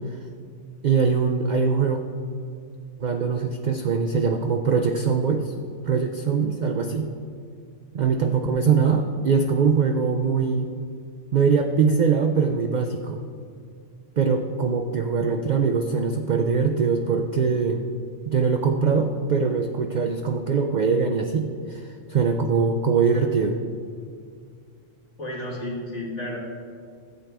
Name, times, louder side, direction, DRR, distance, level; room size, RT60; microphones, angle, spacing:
voice 1, 0.8-2.0 3.0-5.5 5.8-7.1 7.9-10.7 11.3-13.2 14.2-17.8 18.3-23.6, right 5 dB, 60° right, 5 dB, 0.4 m, -22 dB
voice 2, 25.2-26.4, left 1 dB, 70° left, -3 dB, 1.9 m, -32 dB
11.5 x 8.0 x 3.3 m, 2.3 s
omnidirectional pair, 1.3 m